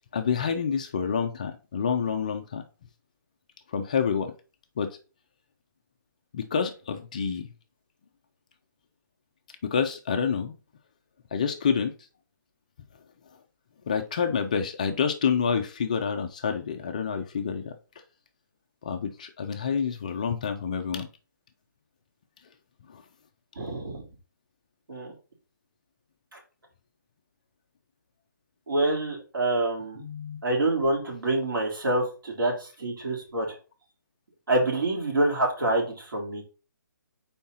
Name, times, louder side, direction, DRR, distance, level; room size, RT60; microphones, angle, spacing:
voice 1, 0.1-2.6 3.7-4.3 4.8-5.0 6.3-7.5 9.6-10.5 11.3-11.9 13.9-17.7 18.8-21.1 22.9-23.0 30.0-30.4, left 6 dB, 20° left, 0.4 m, -28 dB
voice 2, 23.6-24.0 24.9-25.1 26.3-26.4 28.7-30.0 30.4-33.5 34.5-36.4, right 2 dB, 75° right, 3.7 m, -26 dB
4.6 x 4.4 x 5.4 m
hypercardioid pair, 170°, 11 cm